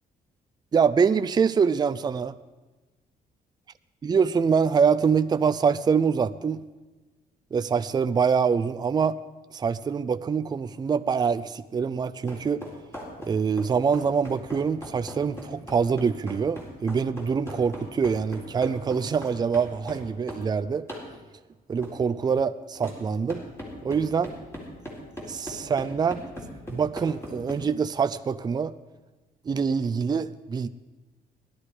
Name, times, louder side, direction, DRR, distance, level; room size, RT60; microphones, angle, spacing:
voice 1, 0.7-2.3 4.0-6.6 7.5-9.2 9.5-12.6 13.3-20.9 21.7-23.4 23.8-24.3 25.2-26.2 26.7-28.7 29.5-30.7, right 6 dB, 25° right, 12 dB, 0.5 m, -25 dB
sound 1, 12.3-20.5 20.9-21.1 21.8-22.0 22.8-23.0 23.3-27.6, left 1 dB, 15° left, 4.2 m, -39 dB
18.0 x 12.0 x 4.9 m, 1.2 s
cardioid pair, 125°, 16 cm